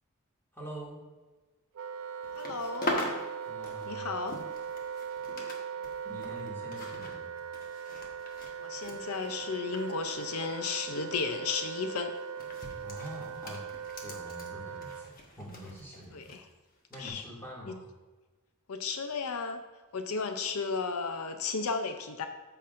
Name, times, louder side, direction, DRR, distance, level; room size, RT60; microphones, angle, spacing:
voice 1, 0.5-1.0 3.5-4.1 6.0-7.3 12.8-13.6 14.0-15.1 15.4-16.3 16.9-17.8, equal, 10° left, -5 dB, 2.4 m, -45 dB
Wind instrument woodwind instrument, 1.7-15.1, right 7 dB, 70° right, 0.4 m, -40 dB
sound 1, 2.2-5.6 5.8-10.8 11.1-11.3 12.1-16.4 16.9-17.1, left 1 dB, 40° left, 1.3 m, -41 dB
voice 2, 2.4-3.0 3.9-4.4 8.6-12.1 16.1-16.4 17.0-17.2 18.7-19.6 19.9-22.3, left 4 dB, 80° left, 6 dB, 0.6 m, -34 dB
14.0 x 5.9 x 2.6 m, 1.3 s
head